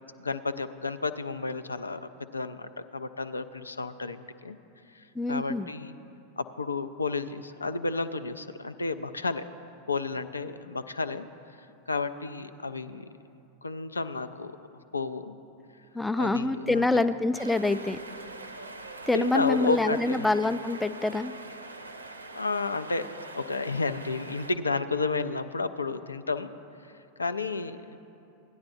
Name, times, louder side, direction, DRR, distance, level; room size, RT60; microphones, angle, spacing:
voice 1, 0.2-4.6 4.9-5.9 6.4-9.4 9.9-11.3 11.9-13.0 13.6-14.5 14.9-15.4 16.1-17.1 19.1-20.3 22.3-26.5 27.2-28.0, left 4 dB, 85° left, 11 dB, 0.3 m, -32 dB
voice 2, 5.2-5.7 15.9-18.0 19.1-21.3, left 2 dB, 5° left, 12 dB, 0.3 m, -26 dB
sound 1, 17.4-24.5, right 2 dB, 85° right, 0.5 m, -43 dB
16.0 x 10.0 x 2.6 m, 2.7 s
figure-of-eight pair, 90°, 0 cm